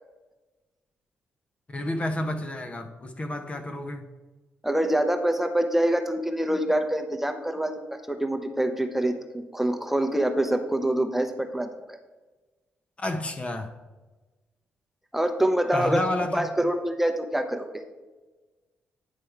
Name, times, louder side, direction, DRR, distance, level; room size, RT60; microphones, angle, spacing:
voice 1, 1.7-4.1 13.0-13.7 15.7-16.4, left 1 dB, 30° left, 6 dB, 0.7 m, -30 dB
voice 2, 4.6-12.0 15.1-16.0 16.3-17.7, right 1 dB, 5° right, 6 dB, 0.7 m, -25 dB
9.3 x 3.5 x 4.5 m, 1.2 s
cardioid pair, 80°, 4 cm